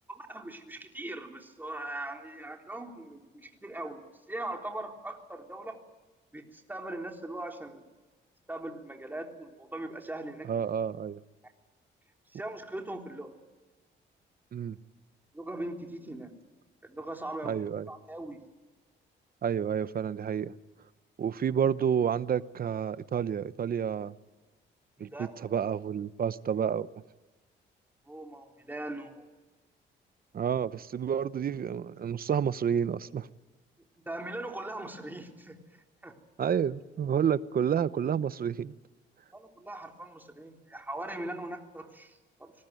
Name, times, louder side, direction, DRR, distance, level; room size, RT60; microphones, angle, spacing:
voice 1, 0.1-4.0 4.3-5.8 6.3-7.8 8.5-10.5 12.3-13.3 15.3-16.3 16.8-17.6 17.9-18.4 25.0-25.4 28.1-29.3 34.1-36.2 39.3-42.5, right 1 dB, 10° right, 3.7 m, -40 dB
voice 2, 10.5-11.2 14.5-14.8 17.4-17.9 19.4-20.5 21.2-24.1 25.0-26.9 30.3-33.3 36.4-38.7, right 8 dB, 50° right, 0.9 m, -29 dB
24.5 x 19.5 x 9.3 m
cardioid pair, 90°, 20 cm